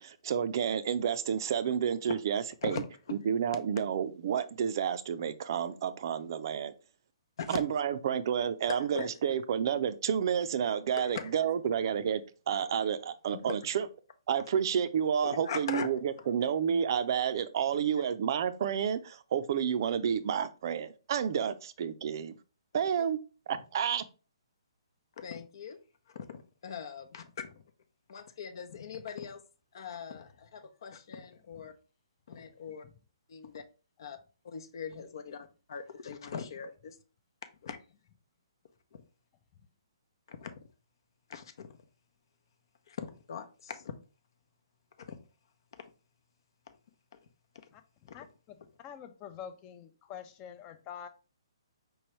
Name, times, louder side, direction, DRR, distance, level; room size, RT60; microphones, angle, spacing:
voice 1, 0.0-2.8 3.3-6.7 7.5-13.9 14.3-22.3 22.7-23.2 23.5-24.0, right 8 dB, 50° right, 0.4 m, -30 dB
voice 2, 2.6-3.2 7.4-7.6 8.8-9.3 11.0-11.3 13.3-13.6 15.2-15.9 16.2-16.3 23.0-23.1 25.2-25.8 26.1-27.5 28.1-29.4 29.7-31.7 32.3-32.8 33.3-33.6 34.0-34.2 34.4-37.0 37.6-37.8 38.9-39.0 40.3-40.5 41.3-41.8 42.9-44.0 45.0-45.2 45.7-45.9 46.7-46.8, left 6 dB, 60° left, 0.8 m, -41 dB
voice 3, 47.7-51.1, left 8 dB, 25° left, 0.6 m, -47 dB
4.8 x 3.1 x 3.1 m
hypercardioid pair, 140°, 3 cm